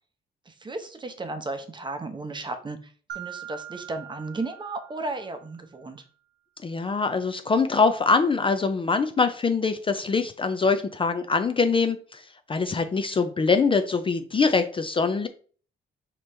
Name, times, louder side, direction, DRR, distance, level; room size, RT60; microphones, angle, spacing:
voice 1, 0.5-6.0, right 2 dB, 25° right, 8 dB, 0.7 m, -34 dB
Mallet percussion, 3.1-5.7, right 11 dB, 60° right, 1.0 m, -42 dB
voice 2, 6.6-15.3, left 4 dB, 25° left, 8 dB, 0.4 m, -23 dB
5.0 x 3.0 x 3.3 m, 0.43 s
cardioid pair, 90°, 20 cm